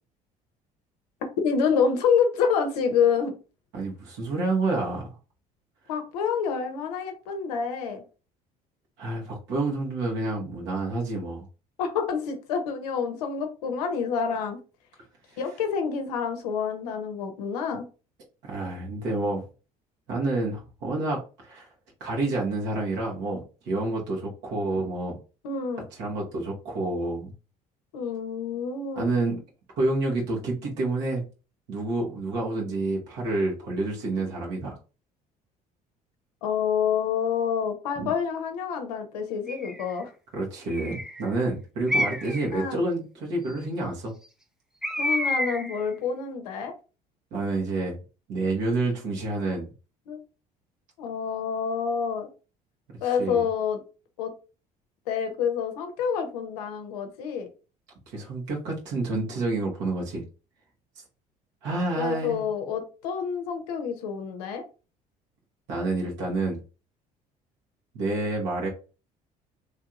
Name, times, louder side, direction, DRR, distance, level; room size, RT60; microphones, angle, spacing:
voice 1, 1.4-3.4 5.9-8.0 11.8-14.6 15.4-17.8 25.4-25.9 27.9-29.1 36.4-40.1 42.5-42.8 45.0-46.7 50.1-50.2 51.0-52.3 53.0-53.8 54.2-54.3 55.1-57.5 62.0-64.6, left 6 dB, 85° left, 0.7 m, -27 dB
voice 2, 3.7-5.1 9.0-11.5 18.4-19.4 20.1-21.7 22.0-25.2 25.9-27.3 29.0-29.4 29.8-31.2 31.7-34.8 38.0-38.1 40.3-44.1 47.3-47.9 48.3-49.7 52.9-53.4 58.1-60.2 61.6-62.4 65.7-66.6 67.9-68.7, right 2 dB, 70° right, 1.2 m, -28 dB
Bird, 39.5-39.9 40.7-41.2 41.9-42.5 44.8-45.8, left 1 dB, 5° right, 0.5 m, -28 dB
3.2 x 2.8 x 2.4 m
hypercardioid pair, 65°, 20 cm